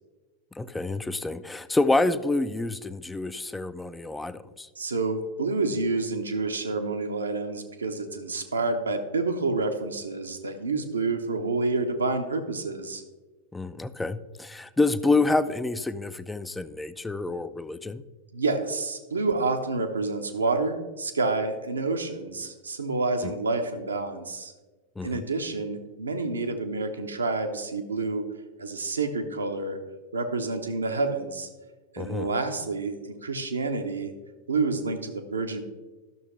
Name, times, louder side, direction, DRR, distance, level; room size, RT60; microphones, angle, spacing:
voice 1, 0.6-4.7 13.5-18.0 23.2-23.3 25.0-25.2 32.0-32.3, left 2 dB, 10° left, 12 dB, 0.4 m, -27 dB
voice 2, 4.8-13.0 18.3-24.5 25.0-28.3 28.6-29.8 30.1-31.5 31.9-34.1 34.5-35.6, right 3 dB, 75° right, 6 dB, 0.8 m, -28 dB
12.0 x 6.4 x 3.1 m, 1.2 s
figure-of-eight pair, 90°, 0 cm